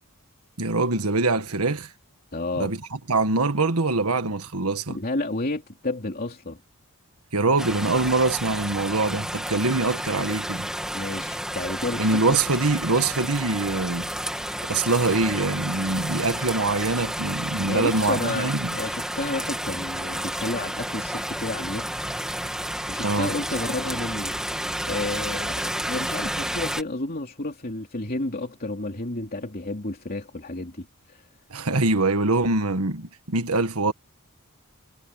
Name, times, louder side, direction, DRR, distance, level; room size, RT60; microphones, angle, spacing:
voice 1, 0.6-1.9 2.6-5.0 7.3-10.7 12.0-14.1 14.7-18.8 23.0-23.3 31.5-33.9, right 3 dB, 80° right, 1.6 m, -24 dB
voice 2, 2.3-2.7 4.9-6.6 10.9-12.2 17.7-22.1 22.9-24.3 24.9-31.2, left 2 dB, 40° left, 3.0 m, -31 dB
sound 1, 7.6-26.8, equal, 5° right, 2.5 m, -31 dB
head